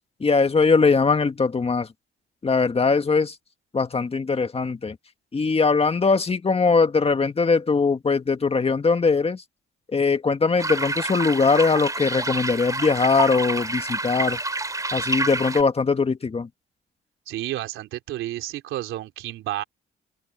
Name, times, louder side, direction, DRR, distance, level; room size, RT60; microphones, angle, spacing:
voice 1, 0.2-1.9 2.4-3.4 3.7-5.0 5.3-9.4 9.9-14.4 14.9-16.5, left 4 dB, 30° left, 1.9 m, -21 dB
sound 1, 10.6-15.6, right 2 dB, 15° right, 3.2 m, -28 dB
voice 2, 17.3-19.6, right 14 dB, 90° right, 3.6 m, -31 dB
open air
cardioid pair, 90°, 20 cm